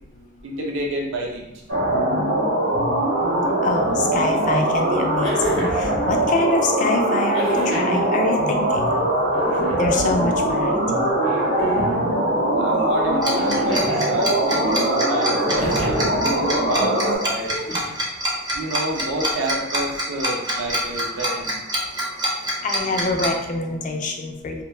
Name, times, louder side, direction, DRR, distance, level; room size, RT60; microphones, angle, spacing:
voice 1, 0.4-1.5 12.6-16.0 16.3-16.9 17.2-17.6 18.5-21.5, right 1 dB, 70° right, 0 dB, 0.5 m, -29 dB
sound 1, 1.7-17.2, right 1 dB, 50° right, 0.9 m, -21 dB
voice 2, 3.6-9.1 9.8-11.0 22.6-24.6, left 2 dB, 40° left, 3 dB, 0.3 m, -25 dB
sound 2, 5.2-5.9 7.3-8.0 9.3-10.0 11.2-12.0 13.4-14.1 15.6-16.1 17.4-18.0 19.3-19.4, left 1 dB, 65° left, 0.8 m, -32 dB
Tick-tock, 13.2-23.3, equal, 20° right, 0.4 m, -25 dB
2.1 x 2.1 x 3.1 m, 0.91 s
head